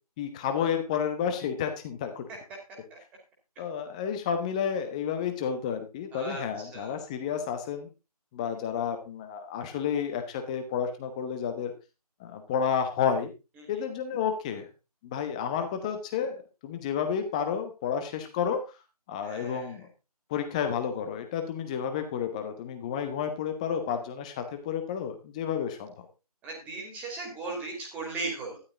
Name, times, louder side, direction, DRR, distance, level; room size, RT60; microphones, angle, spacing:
voice 1, 0.2-2.2 3.6-7.9 8.3-11.7 12.2-13.3 13.7-14.7 15.0-18.6 19.1-19.9 20.3-25.9, left 7 dB, 10° left, 7 dB, 1.1 m, -31 dB
voice 2, 6.1-7.0 13.6-13.7 19.2-19.8 26.4-28.6, right 3 dB, 5° right, 0 dB, 2.7 m, -37 dB
13.0 x 11.0 x 3.9 m, 0.30 s
figure-of-eight pair, 160°, 20 cm